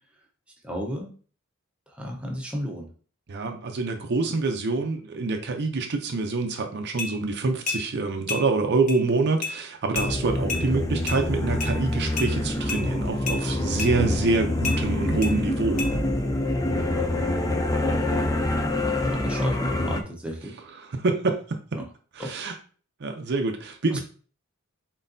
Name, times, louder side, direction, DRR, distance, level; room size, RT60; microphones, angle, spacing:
voice 1, 0.6-1.1 1.9-2.9 17.1-17.6 19.1-20.6 21.8-21.9 22.2-22.4 23.9-24.0, equal, 5° right, 0 dB, 0.8 m, -33 dB
voice 2, 3.3-15.8 20.8-21.8 22.1-22.5 23.0-24.0, right 3 dB, 55° right, 4 dB, 0.6 m, -26 dB
sound 1, 7.0-7.1 7.7-7.8 8.3-8.4 8.9-9.0 9.4-9.6 10.0-10.1 10.5-10.6 11.1-11.2 11.6-11.7 12.2-12.3 12.7-12.8 13.3-13.4 13.8-13.9 14.6-14.8 15.2-15.3 15.8-15.9, left 4 dB, 35° left, 0.9 m, -30 dB
sound 2, 10.0-20.0, left 1 dB, 15° left, 0.4 m, -26 dB
4.1 x 3.9 x 2.6 m, 0.41 s
head